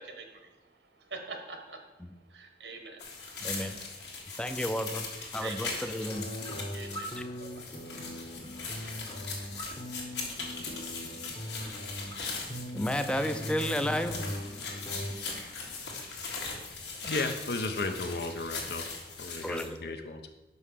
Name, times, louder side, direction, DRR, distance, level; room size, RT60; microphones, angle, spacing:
voice 1, 0.0-4.4 5.1-6.0 6.3-8.5, right 3 dB, 85° right, 4 dB, 1.3 m, -47 dB
sound 1, 3.0-19.6, left 4 dB, 80° left, 1.7 m, -40 dB
voice 2, 3.4-3.8 4.4-5.1 5.3-6.3 12.7-14.2 19.4-19.8, equal, 5° left, 8 dB, 0.4 m, -32 dB
sound 2, 6.1-15.1, equal, 25° left, 0.9 m, -40 dB
voice 3, 17.0-18.8 19.2-20.3, left 3 dB, 65° left, 6 dB, 0.6 m, -34 dB
5.6 x 5.5 x 6.4 m, 1.1 s
head